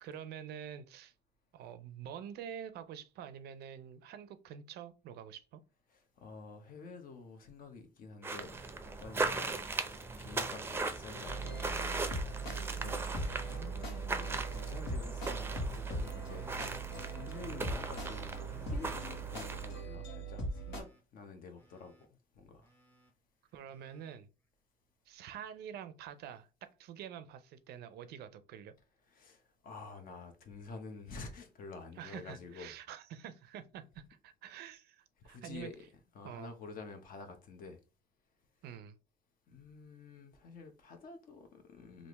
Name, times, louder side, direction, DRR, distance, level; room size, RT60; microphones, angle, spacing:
voice 1, 0.0-1.1 1.5-5.6 12.8-13.1 23.5-24.3 25.1-26.5 26.8-28.7 32.0-35.7 36.2-36.5 38.6-39.0, right 9 dB, 70° right, 0.5 m, -47 dB
voice 2, 5.9-8.6 8.8-12.1 12.7-22.7 29.1-32.7 35.2-35.9 36.1-37.8 39.5-42.1, left 4 dB, 55° left, 0.8 m, -49 dB
sound 1, 8.2-19.8, right 3 dB, 15° right, 0.5 m, -39 dB
Telephone, 9.0-9.5 10.0-10.6 11.1-11.6 12.1-12.7 13.2-13.7 14.2-14.8 15.3-15.8 16.3-16.9 17.3-17.9 18.4-20.0 20.2-21.0 21.6-22.1 22.6-23.1 23.7-24.2 25.4-25.5, right 1 dB, 10° left, 0.8 m, -55 dB
sound 2, 11.2-20.8, right 3 dB, 85° left, 1.4 m, -40 dB
3.4 x 2.5 x 3.0 m
cardioid pair, 110°, 17 cm